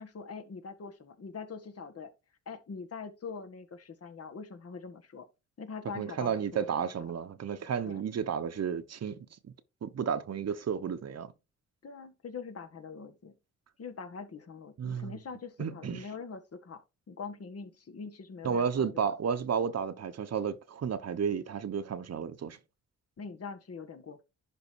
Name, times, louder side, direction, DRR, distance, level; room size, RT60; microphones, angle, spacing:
voice 1, 0.0-2.1 2.5-5.3 5.6-7.2 7.8-8.0 11.8-13.3 13.8-16.8 17.1-19.1 23.2-24.2, left 5 dB, 55° left, 1.8 m, -43 dB
voice 2, 6.0-9.2 9.4-9.5 9.8-11.3 14.8-15.1 15.6-16.0 18.4-22.6, right 7 dB, 60° right, 1.1 m, -32 dB
11.0 x 3.8 x 4.7 m
cardioid pair, 90°, 29 cm